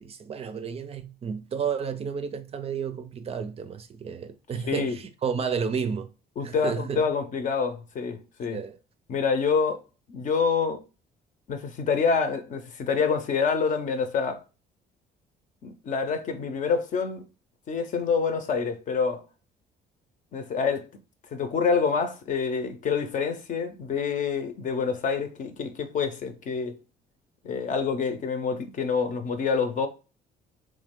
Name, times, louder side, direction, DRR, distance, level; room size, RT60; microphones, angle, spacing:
voice 1, 0.0-6.1 6.4-7.0 8.5-8.8, right 6 dB, 35° right, 0.4 m, -31 dB
voice 2, 4.6-5.0 6.4-8.6 9.1-9.8 10.1-10.8 11.5-14.4 15.6-17.2 17.7-19.2 20.3-20.9 21.3-26.8 27.4-29.9, left 5 dB, 50° left, 0.7 m, -27 dB
3.4 x 3.2 x 3.6 m
cardioid pair, 110°, 17 cm